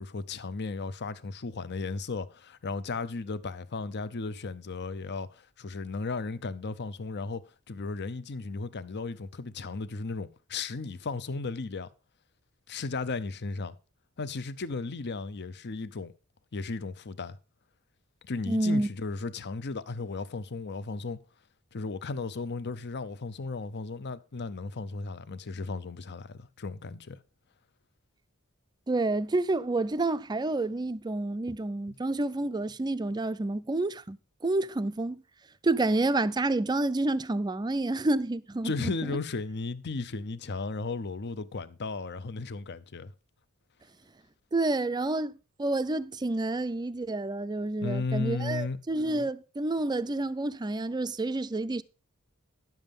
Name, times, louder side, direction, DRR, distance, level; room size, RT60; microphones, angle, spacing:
voice 1, 0.0-7.4 7.7-11.9 12.7-13.7 14.2-16.1 16.5-17.4 18.2-21.2 21.7-27.2 38.6-43.1 47.8-48.8, left 3 dB, 50° left, 0.7 m, -35 dB
voice 2, 18.5-18.9 28.9-34.2 34.4-35.2 35.6-38.9 44.5-51.8, right 2 dB, 20° right, 0.4 m, -29 dB
10.5 x 7.3 x 5.2 m
head